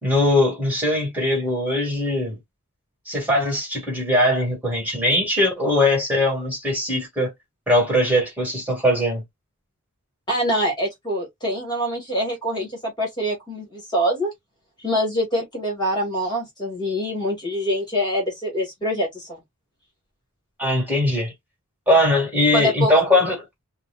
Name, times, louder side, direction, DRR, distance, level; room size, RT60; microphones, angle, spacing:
voice 1, 0.0-2.4 3.1-7.3 7.7-9.2 20.6-21.3 21.9-23.4, left 1 dB, 10° right, 2.5 m, -20 dB
voice 2, 10.3-14.3 14.8-19.4 22.5-22.9, equal, 20° left, 2.1 m, -25 dB
5.3 x 2.4 x 2.5 m
head